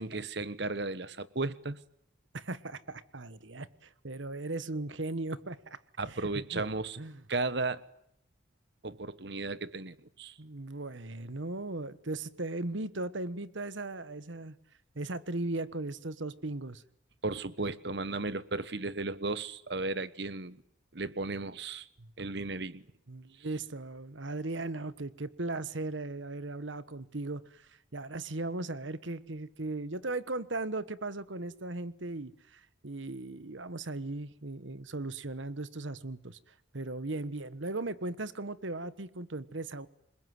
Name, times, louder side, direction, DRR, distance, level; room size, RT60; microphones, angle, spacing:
voice 1, 0.0-1.8 6.0-7.0 7.3-7.8 8.8-10.3 17.2-20.6 20.9-21.9 22.2-22.8, right 3 dB, 60° right, 1.2 m, -35 dB
voice 2, 2.3-5.8 6.1-6.6 7.0-7.2 10.4-14.6 14.9-16.8 22.0-22.1 23.1-36.4 36.7-39.9, right 2 dB, 80° right, 1.3 m, -37 dB
27.0 x 21.5 x 9.5 m
head